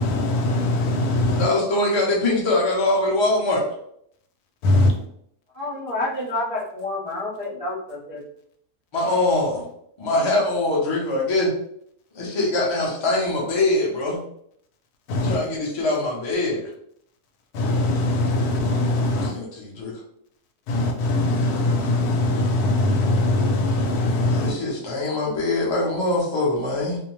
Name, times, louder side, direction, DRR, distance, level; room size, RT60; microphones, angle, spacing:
voice 1, 0.0-1.5 4.6-5.0 15.1-15.4 17.5-19.4 20.7-24.6, left 2 dB, 80° left, 3 dB, 1.1 m, -21 dB
voice 2, 1.3-3.6 8.9-9.7 10.0-11.5 12.1-14.2 15.2-16.6 19.1-20.0 24.3-27.0, left 2 dB, 40° left, -3 dB, 0.3 m, -23 dB
voice 3, 5.5-8.2, left 2 dB, 55° right, -7 dB, 0.3 m, -29 dB
2.7 x 2.1 x 3.0 m, 0.70 s
omnidirectional pair, 1.7 m